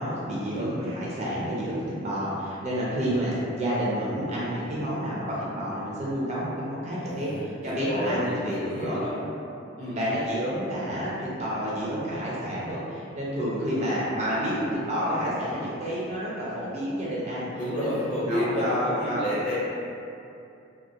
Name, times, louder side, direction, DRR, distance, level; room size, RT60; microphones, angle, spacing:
voice 1, 0.0-9.0 9.8-17.5 17.8-17.9 18.2-19.2, equal, 30° right, -7 dB, 0.4 m, -29 dB
voice 2, 7.0-9.2 9.8-10.0 17.5-19.7, left 1 dB, 40° left, -9 dB, 0.6 m, -30 dB
2.3 x 2.1 x 2.6 m, 2.6 s
head